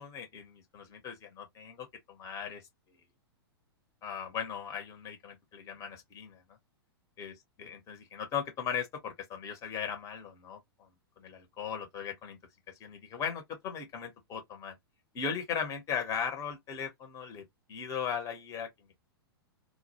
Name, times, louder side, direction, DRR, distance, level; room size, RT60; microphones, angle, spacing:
voice 1, 0.0-2.6 4.0-6.4 7.2-10.9 11.2-12.4 12.8-14.8 15.1-18.7, left 7 dB, 25° left, 0.8 m, -38 dB
2.2 x 2.0 x 2.9 m
figure-of-eight pair, 100°, 13 cm